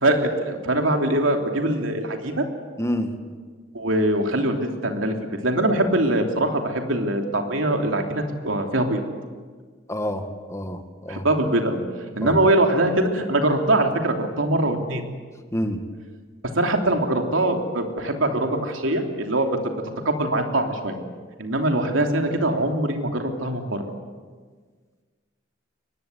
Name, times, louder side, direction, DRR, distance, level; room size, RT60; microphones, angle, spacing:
voice 1, 0.0-2.4 3.7-5.1 5.4-9.0 11.1-11.8 12.1-15.0 16.5-19.7 20.0-21.0 21.4-23.9, right 1 dB, 90° right, 3 dB, 3.2 m, -22 dB
voice 2, 2.8-3.1 9.9-11.3 12.2-12.3 15.5-15.8, equal, 15° left, 6 dB, 1.9 m, -28 dB
23.5 x 20.0 x 9.4 m, 1.5 s
head